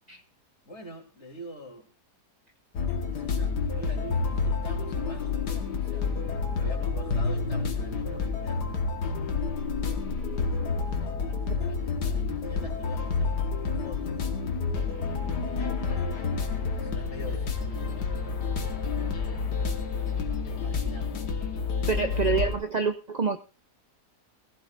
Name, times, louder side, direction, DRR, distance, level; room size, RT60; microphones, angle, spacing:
voice 1, 0.6-1.9 3.0-8.7 10.8-14.5 15.3-16.2 16.6-18.0 20.4-21.3 21.7-22.2, equal, 45° left, 1 dB, 3.5 m, -45 dB
sound 1, 2.8-22.5, left 5 dB, 90° left, 2.0 m, -29 dB
voice 2, 21.9-23.4, right 5 dB, 50° right, 7 dB, 0.5 m, -27 dB
17.0 x 16.0 x 2.5 m, 0.33 s
omnidirectional pair, 1.7 m